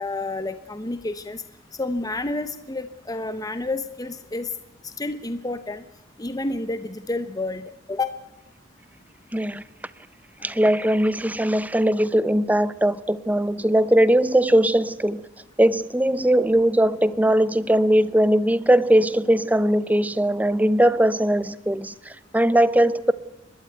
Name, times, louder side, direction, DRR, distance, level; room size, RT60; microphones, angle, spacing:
voice 1, 0.0-1.4 1.8-4.5 4.8-5.8 6.2-8.1, left 2 dB, 20° left, 11 dB, 0.9 m, -29 dB
voice 2, 9.3-9.6 10.4-15.2 15.6-23.1, right 1 dB, 10° right, 17 dB, 0.7 m, -20 dB
29.5 x 12.0 x 9.2 m, 0.96 s
head